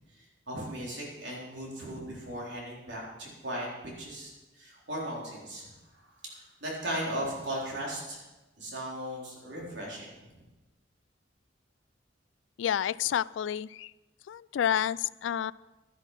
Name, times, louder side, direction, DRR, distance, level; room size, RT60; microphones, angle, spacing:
voice 1, 0.1-8.2 8.6-10.1, right 1 dB, 70° right, -3 dB, 3.9 m, -37 dB
voice 2, 12.6-13.9 14.3-15.5, left 9 dB, 85° left, 20 dB, 0.3 m, -29 dB
11.5 x 10.5 x 5.7 m, 1.1 s
head